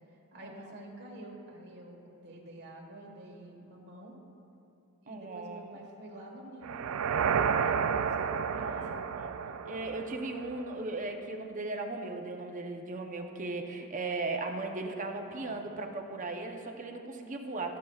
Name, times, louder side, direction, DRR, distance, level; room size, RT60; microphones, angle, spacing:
voice 1, 0.3-4.2 5.0-8.3 8.5-8.9 15.2-15.6, right 1 dB, 50° right, -1 dB, 1.5 m, -48 dB
voice 2, 5.1-5.6 8.5-9.3 9.6-17.8, right 2 dB, 35° right, 4 dB, 0.7 m, -37 dB
sound 1, 6.6-10.7, right 6 dB, 70° right, 0.3 m, -31 dB
20.0 x 7.2 x 2.4 m, 2.9 s
head